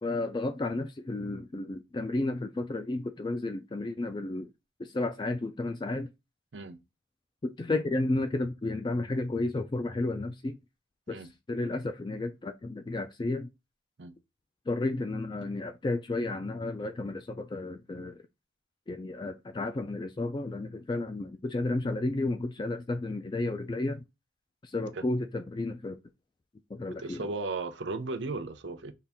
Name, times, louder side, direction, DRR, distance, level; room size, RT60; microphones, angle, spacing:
voice 1, 0.0-4.5 4.8-6.1 7.4-10.6 11.1-13.5 14.7-18.2 18.9-24.0 24.6-26.0 26.7-27.3, left 2 dB, 25° left, 0.3 m, -32 dB
voice 2, 27.0-28.9, right 3 dB, 65° right, 0.6 m, -35 dB
5.6 x 2.5 x 3.5 m
head